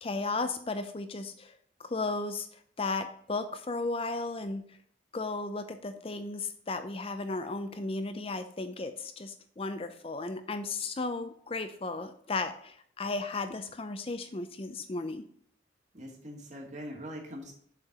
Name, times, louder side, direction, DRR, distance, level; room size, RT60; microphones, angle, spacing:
voice 1, 0.0-2.5 2.8-4.6 5.1-15.2, left 3 dB, 30° left, 9 dB, 0.5 m, -35 dB
voice 2, 15.9-17.5, equal, 40° right, 0 dB, 2.3 m, -42 dB
7.4 x 4.5 x 6.6 m, 0.62 s
head